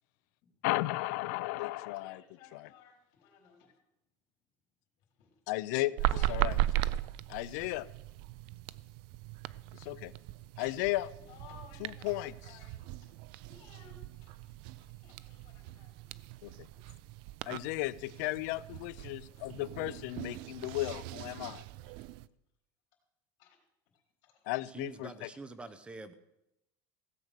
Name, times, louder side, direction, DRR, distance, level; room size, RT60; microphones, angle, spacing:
voice 1, 0.6-2.2 5.5-5.9 6.3-6.6 7.3-7.9 9.7-10.1 10.6-11.1 11.8-12.3 16.4-16.7 17.5-21.6 24.5-25.3, left 18 dB, 75° left, 19 dB, 0.5 m, -34 dB
voice 2, 1.5-3.7 5.1-5.3 5.8-6.4 8.4-8.6 11.3-13.1 13.5-14.0 15.0-16.2 18.6-18.8 19.1-19.6 19.9-20.6 23.4-23.6 23.9-24.5, left 7 dB, 55° left, 1 dB, 4.0 m, -59 dB
sound 1, 6.0-22.3, right 15 dB, 60° right, 0.4 m, -38 dB
voice 3, 24.7-26.1, right 3 dB, 10° right, 11 dB, 0.7 m, -46 dB
16.0 x 7.8 x 6.6 m, 0.86 s
cardioid pair, 165°, 9 cm